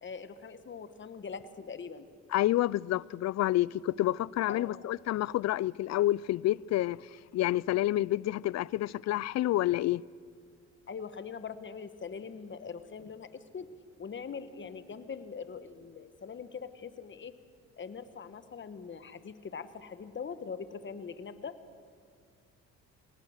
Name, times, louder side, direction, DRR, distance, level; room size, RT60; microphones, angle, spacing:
voice 1, 0.0-2.1 4.5-4.8 10.9-13.7 14.0-17.3 17.8-21.5, left 6 dB, 40° left, 1.3 m, -42 dB
voice 2, 2.3-10.0, left 15 dB, 60° left, 0.4 m, -29 dB
23.0 x 18.0 x 6.5 m
cardioid pair, 90°, 30 cm